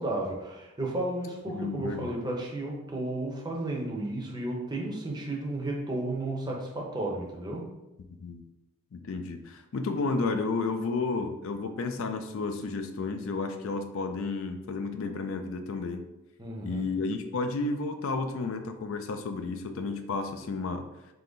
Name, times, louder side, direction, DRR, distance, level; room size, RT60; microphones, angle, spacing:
voice 1, 0.0-7.7 16.4-16.9, right 2 dB, 20° right, -1 dB, 0.7 m, -33 dB
voice 2, 1.5-2.1 8.2-8.4 8.9-16.0 16.6-20.9, left 3 dB, 60° left, 7 dB, 0.4 m, -32 dB
3.8 x 2.8 x 3.8 m, 0.97 s
head